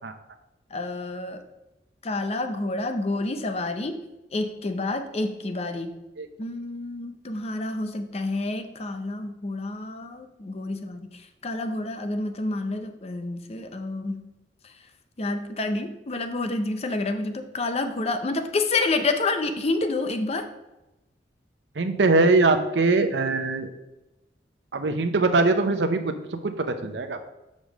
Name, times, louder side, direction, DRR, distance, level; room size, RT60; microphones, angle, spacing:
voice 1, 0.7-1.4 2.0-4.1 4.3-6.0 6.4-11.1 11.4-14.2 15.2-20.5, left 2 dB, 35° left, 8 dB, 0.6 m, -28 dB
voice 2, 21.8-23.7 24.7-27.2, right 3 dB, 80° right, 7 dB, 0.7 m, -22 dB
5.3 x 5.0 x 6.3 m, 0.98 s
head